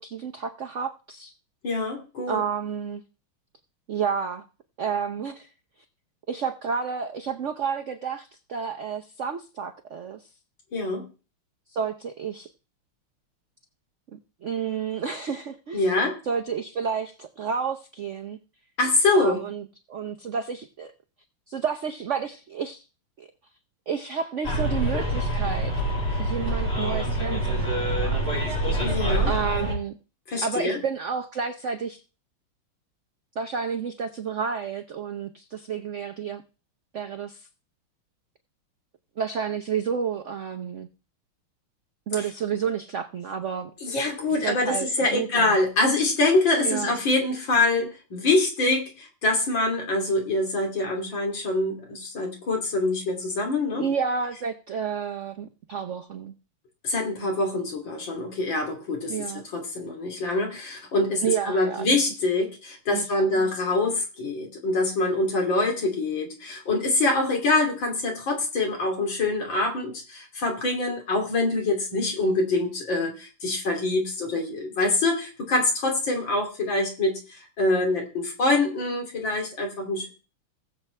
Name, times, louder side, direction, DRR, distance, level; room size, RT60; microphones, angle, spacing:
voice 1, 0.0-1.3 2.3-3.0 3.9-4.4 4.8-5.5 6.3-10.2 11.7-12.5 14.1-15.9 16.2-18.4 19.1-20.9 21.5-22.8 23.2-23.3 23.9-25.7 26.2-28.9 29.3-30.0 30.4-32.0 33.4-36.4 36.9-37.5 39.2-40.9 42.1-43.7 44.4-45.6 46.6-46.9 53.7-56.3 59.1-59.4 61.2-61.9 62.9-63.5, right 6 dB, 85° right, 6 dB, 0.6 m, -30 dB
voice 2, 1.6-2.4 10.7-11.1 15.7-16.2 18.8-19.4 28.8-29.3 30.3-30.8 43.8-53.9 56.8-80.1, left 2 dB, 60° left, 2 dB, 3.5 m, -25 dB
Bus, 24.4-29.7, right 1 dB, 25° left, 4.9 m, -26 dB
19.5 x 7.3 x 3.3 m, 0.34 s
omnidirectional pair, 2.3 m